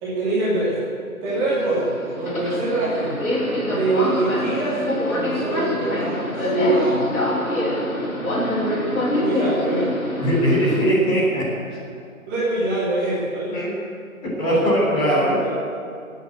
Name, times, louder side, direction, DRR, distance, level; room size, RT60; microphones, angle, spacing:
voice 1, 0.0-0.8 1.2-3.3 3.6-4.8 5.1-7.1 9.1-9.9 12.3-13.6 14.4-14.6 15.0-15.5, right 2 dB, 15° right, -9 dB, 2.9 m, -24 dB
Subway metro underground, 1.3-10.8, left 1 dB, 85° left, 5.4 m, -25 dB
voice 2, 10.2-11.5 13.5-13.7 14.2-15.4, equal, 15° left, -6 dB, 3.7 m, -20 dB
19.0 x 9.3 x 8.0 m, 2.4 s
figure-of-eight pair, 155°, 42 cm